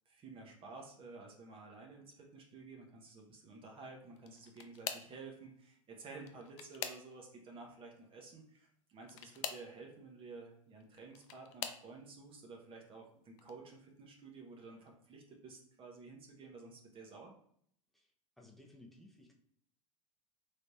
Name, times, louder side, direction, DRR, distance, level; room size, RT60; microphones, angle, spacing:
voice 1, 0.1-17.3, right 3 dB, 30° right, 1 dB, 0.8 m, -52 dB
sound 1, 4.2-5.2 6.1-7.4 9.0-9.7 10.8-11.9 12.6-13.0 13.4-13.5 14.9-15.0, left 9 dB, 55° left, 0.5 m, -44 dB
voice 2, 18.4-19.3, left 1 dB, ahead, 0 dB, 0.7 m, -58 dB
3.3 x 3.2 x 2.7 m, 0.66 s
figure-of-eight pair, 85°, 18 cm